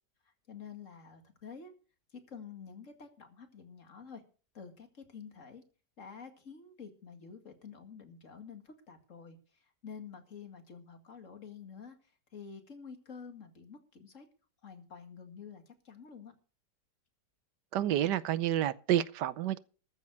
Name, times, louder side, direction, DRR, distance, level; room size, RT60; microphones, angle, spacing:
voice 1, 0.5-1.7 2.1-4.2 4.5-5.6 6.0-14.3 14.6-16.3, left 6 dB, 45° left, 2.4 m, -49 dB
voice 2, 17.7-19.6, right 11 dB, 80° right, 1.4 m, -29 dB
14.0 x 7.3 x 6.6 m
omnidirectional pair, 1.8 m